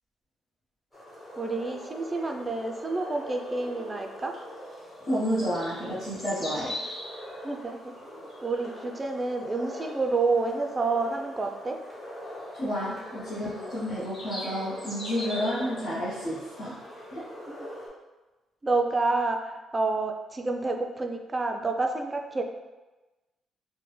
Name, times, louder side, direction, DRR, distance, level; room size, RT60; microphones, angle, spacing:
sound 1, 0.9-17.9, left 1 dB, 25° left, 1.2 m, -41 dB
voice 1, 1.4-4.3 7.4-11.8 17.5-17.7 18.6-22.4, right 3 dB, 25° right, 3 dB, 0.4 m, -29 dB
voice 2, 5.1-6.8 12.5-16.9 17.1-17.2, equal, 55° left, -10 dB, 1.0 m, -30 dB
3.6 x 2.1 x 3.1 m, 1.1 s
cardioid pair, 90°, 0 cm